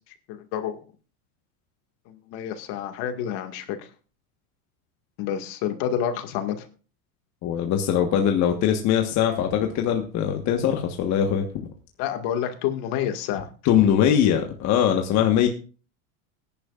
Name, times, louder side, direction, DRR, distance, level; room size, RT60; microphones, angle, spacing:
voice 1, 0.3-0.8 2.1-3.8 5.2-6.7 12.0-13.5, left 9 dB, 55° left, 6 dB, 2.0 m, -28 dB
voice 2, 7.4-11.4 13.6-15.5, left 9 dB, 40° left, 4 dB, 1.4 m, -21 dB
19.5 x 10.5 x 2.5 m, 0.37 s
supercardioid pair, 135°, 43 cm